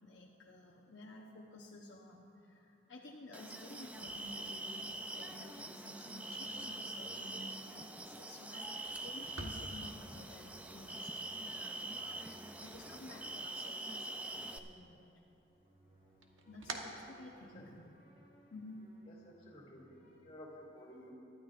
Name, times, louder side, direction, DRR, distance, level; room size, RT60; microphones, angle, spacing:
voice 1, 0.0-12.3 12.6-15.1 16.5-17.9 18.5-18.8, left 2 dB, 60° left, -2 dB, 0.9 m, -53 dB
sound 1, 3.3-14.6, right 2 dB, 5° right, 0.4 m, -44 dB
sound 2, 3.8-20.2, right 1 dB, 30° right, 3.1 m, -65 dB
sound 3, 3.8-13.7 14.0-14.9 15.3-17.9, right 2 dB, 85° right, 1.2 m, -53 dB
voice 2, 19.1-21.1, equal, 30° left, -4 dB, 2.5 m, -54 dB
24.0 x 12.0 x 2.5 m, 2.9 s
head